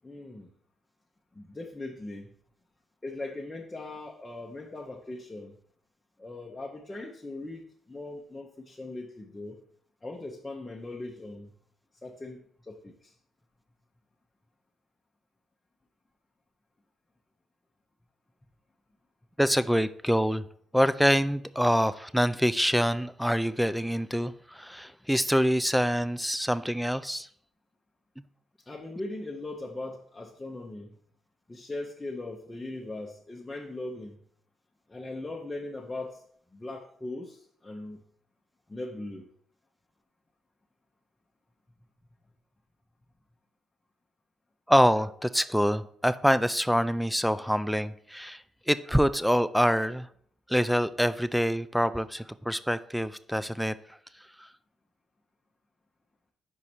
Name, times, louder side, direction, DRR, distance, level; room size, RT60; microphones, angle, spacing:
voice 1, 0.0-0.5 1.3-2.3 3.0-5.6 6.2-9.6 10.0-11.5 12.0-13.1 28.7-30.9 31.5-34.2 34.9-36.2 36.5-38.0 38.7-39.2, left 2 dB, 15° left, -1 dB, 0.7 m, -39 dB
voice 2, 19.4-20.5 20.7-27.3 44.7-50.1 50.5-53.8 54.4-54.5, equal, ahead, 14 dB, 0.3 m, -25 dB
5.4 x 4.8 x 4.3 m, 0.63 s
cardioid pair, 90°, 0 cm